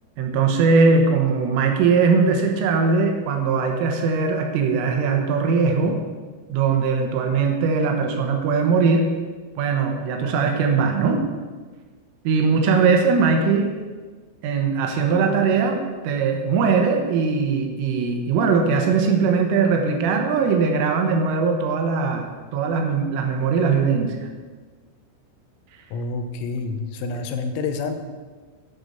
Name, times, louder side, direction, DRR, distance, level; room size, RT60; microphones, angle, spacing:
voice 1, 0.2-6.0 6.5-9.1 9.6-11.2 12.3-13.7 14.4-24.3, right 5 dB, 80° right, 3 dB, 3.6 m, -20 dB
voice 2, 25.9-28.0, left 4 dB, 85° left, 7 dB, 3.6 m, -28 dB
9.7 x 8.0 x 6.7 m, 1.4 s
omnidirectional pair, 5.9 m